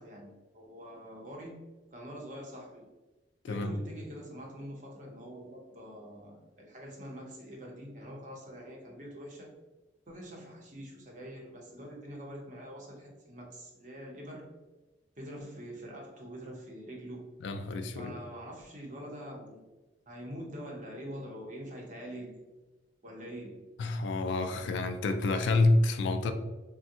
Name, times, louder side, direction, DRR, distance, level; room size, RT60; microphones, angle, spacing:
voice 1, 0.0-1.6 1.9-2.9 3.5-9.5 10.1-14.5 15.2-17.3 18.0-19.6 20.1-22.5 23.0-23.6, equal, 40° right, 0.7 m, -45 dB
voice 2, 3.4-3.8 17.4-18.1 23.8-26.3, left 2 dB, 70° left, 0.3 m, -28 dB
3.4 x 2.1 x 2.7 m
head